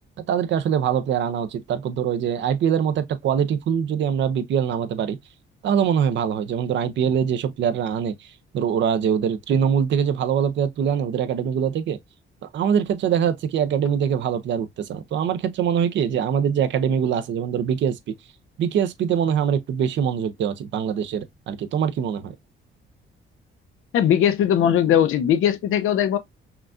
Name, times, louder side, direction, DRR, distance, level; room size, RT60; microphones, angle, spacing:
voice 1, 0.3-5.2 5.6-12.0 12.5-18.0 18.6-22.3, right 8 dB, 65° right, 0.6 m, -23 dB
voice 2, 23.9-26.2, left 9 dB, 85° left, 0.7 m, -19 dB
5.8 x 2.3 x 2.5 m
cardioid pair, 175°, 21 cm